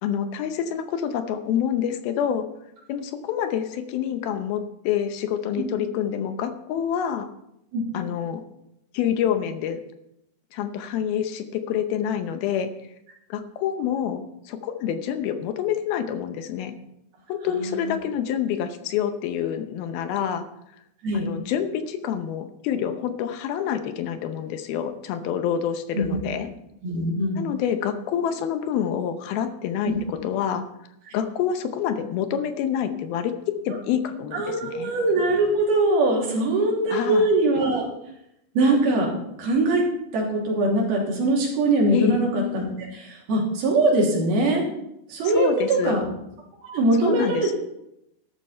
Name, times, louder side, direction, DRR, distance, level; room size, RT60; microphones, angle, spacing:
voice 1, 0.0-2.4 2.9-7.3 7.9-8.4 8.9-9.8 10.5-12.7 13.3-16.7 17.3-20.5 21.1-26.5 27.4-30.6 31.1-33.3 33.7-34.9 36.9-37.3 41.9-42.2 45.4-46.0 47.0-47.5, left 9 dB, 75° left, 8 dB, 2.5 m, -27 dB
voice 2, 17.5-18.0 21.0-21.3 26.0-26.1 26.8-27.4 29.9-30.0 34.3-37.8 38.5-39.1 39.4-39.8 40.1-42.6 42.9-44.6 45.1-46.1 46.7-47.5, right 2 dB, 65° right, -3 dB, 4.7 m, -22 dB
13.0 x 12.0 x 4.4 m, 0.83 s
omnidirectional pair, 4.9 m